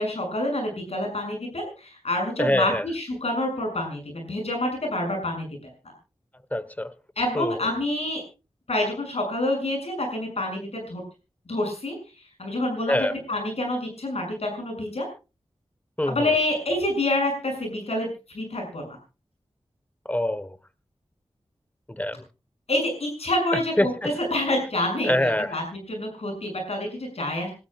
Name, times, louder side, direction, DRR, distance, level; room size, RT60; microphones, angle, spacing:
voice 1, 0.0-5.5 7.2-8.2 8.7-11.0 11.5-11.9 12.4-15.1 16.1-18.1 18.3-19.0 22.7-27.5, left 1 dB, 80° left, 7.1 m, -27 dB
voice 2, 2.4-2.9 6.5-6.9 7.3-7.7 12.9-13.1 16.0-16.3 20.0-20.6 21.9-22.3 23.5-24.2 25.0-25.6, left 1 dB, 15° left, 1.1 m, -25 dB
28.0 x 13.0 x 2.4 m
wide cardioid pair, 50°, 11 cm